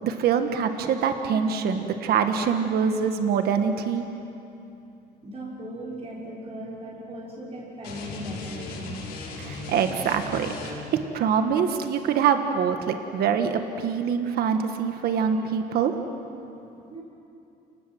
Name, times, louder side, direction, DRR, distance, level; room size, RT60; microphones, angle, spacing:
voice 1, 0.0-4.0 9.4-15.9, right 7 dB, 70° right, 7 dB, 1.6 m, -24 dB
voice 2, 5.2-9.0 15.1-15.4 16.9-17.0, right 1 dB, 35° right, -5 dB, 6.2 m, -38 dB
sound 1, 7.8-11.0, left 3 dB, 85° left, 6.4 m, -37 dB
29.5 x 19.0 x 7.7 m, 2.7 s
cardioid pair, 110°, 17 cm